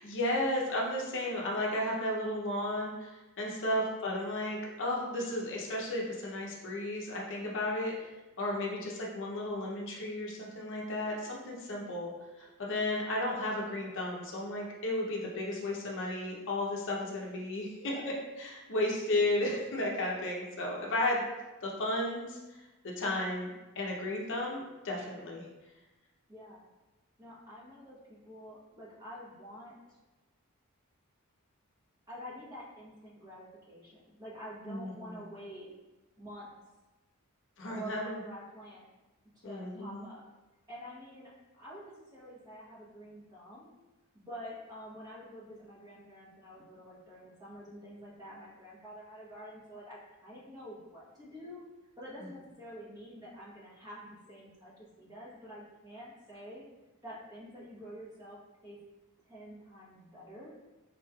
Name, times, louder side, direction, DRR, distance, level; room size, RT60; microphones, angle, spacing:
voice 1, 0.0-8.1 8.4-12.1 12.4-21.2 21.6-22.4 22.8-25.4 34.7-35.2 37.6-38.2 39.4-40.1, left 1 dB, 60° left, -2 dB, 0.6 m, -34 dB
voice 2, 26.3-26.7 27.2-30.0 32.1-35.7 36.2-36.5 37.7-38.9 39.3-40.2 40.7-43.7 44.1-51.6 52.0-56.6 57.0-58.8 59.3-60.5, equal, 20° right, -7 dB, 0.9 m, -48 dB
3.9 x 3.0 x 2.3 m, 1.1 s
head